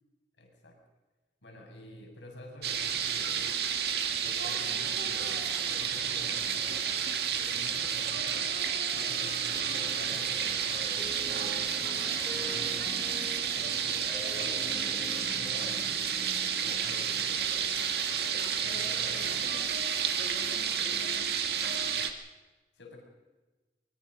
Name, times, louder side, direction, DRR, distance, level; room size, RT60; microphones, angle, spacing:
voice 1, 0.4-0.8 1.4-3.6 4.2-6.9 7.3-8.3 8.8-12.8 13.5-16.1 16.6-17.5 18.6-19.5 22.7-23.0, left 1 dB, 90° left, 1 dB, 6.4 m, -49 dB
sound 1, 2.6-22.1, right 7 dB, 65° right, 1.9 m, -31 dB
sound 2, 9.8-19.0, left 1 dB, 15° left, 1.8 m, -47 dB
voice 2, 18.6-19.8 20.2-21.4, equal, 50° left, -1 dB, 5.2 m, -47 dB
23.5 x 22.5 x 5.4 m, 1.2 s
head